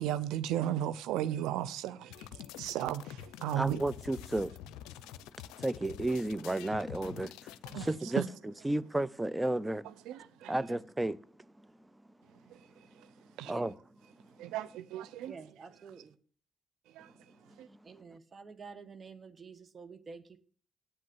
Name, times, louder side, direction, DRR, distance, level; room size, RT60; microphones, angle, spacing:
voice 1, 0.0-2.1 2.6-3.8 7.7-7.9 8.2-8.3 10.1-10.5 13.4-13.5 14.4-15.3 17.0-17.1 17.6-17.7, right 12 dB, 85° right, 0.6 m, -34 dB
sound 1, 2.1-7.9, left 11 dB, 90° left, 0.5 m, -47 dB
voice 2, 3.6-4.5 5.6-10.0 10.5-11.2 11.6-11.7 13.4-13.7 14.4-14.5 17.5-17.8, right 1 dB, 15° right, 0.7 m, -33 dB
voice 3, 13.4-13.8 15.3-16.2 17.8-20.4, right 5 dB, 45° right, 1.3 m, -49 dB
8.5 x 7.8 x 8.0 m
supercardioid pair, 55°, 0 cm